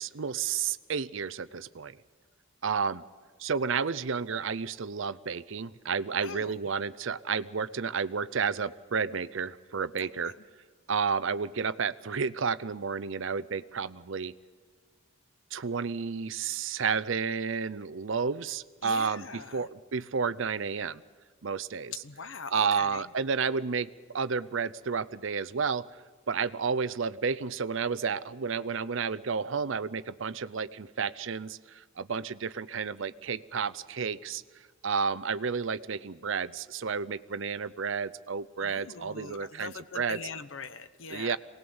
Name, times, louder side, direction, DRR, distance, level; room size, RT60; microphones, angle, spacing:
voice 1, 0.0-2.0 2.6-3.0 3.4-10.3 10.9-14.3 15.5-21.0 21.4-21.9 22.5-25.9 26.3-34.4 34.8-40.2 41.1-41.4, right 5 dB, 65° right, 16 dB, 0.6 m, -31 dB
voice 2, 6.2-6.6 10.0-10.3 18.8-19.7 22.0-23.0 38.6-41.4, left 5 dB, 65° left, 12 dB, 1.0 m, -42 dB
23.5 x 19.0 x 7.9 m, 1.5 s
head